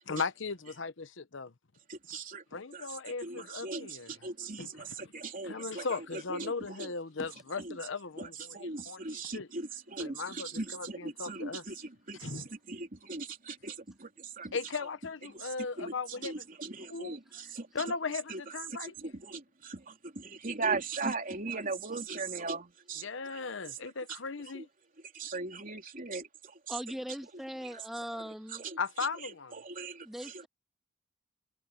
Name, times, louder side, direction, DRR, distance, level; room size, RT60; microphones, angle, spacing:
voice 1, 0.1-1.5 2.5-4.1 4.6-5.1 5.4-9.5 10.0-11.6 12.2-12.5 14.5-16.4 16.9-17.2 17.7-18.9 23.0-24.7 28.8-29.6, left 4 dB, 70° left, 1.0 m, -37 dB
voice 2, 1.9-2.4 2.7-6.9 7.6-7.8 8.2-14.6 15.3-17.9 18.3-18.5 18.8-23.5 24.5-24.7 25.1-26.8 27.6-27.8 28.5-28.8 29.2-30.5, right 3 dB, 45° right, 3.5 m, -39 dB
voice 3, 26.7-28.6 30.0-30.5, equal, ahead, 2.9 m, -40 dB
head